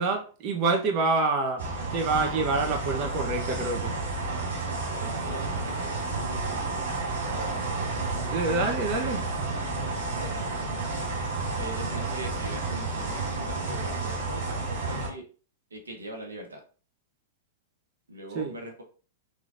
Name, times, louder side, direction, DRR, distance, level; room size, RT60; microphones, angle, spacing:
voice 1, 0.0-1.7 1.9-3.9 8.2-9.2 18.3-18.5, right 3 dB, 40° right, 1.0 m, -27 dB
sound 1, 1.6-15.1, right 3 dB, 65° right, 2.4 m, -31 dB
voice 2, 4.9-6.9 7.2-7.8 10.1-10.6 11.5-15.2 15.7-16.6 18.1-18.8, right 1 dB, 85° right, 1.2 m, -41 dB
4.9 x 3.8 x 2.6 m
hypercardioid pair, 105°, 0 cm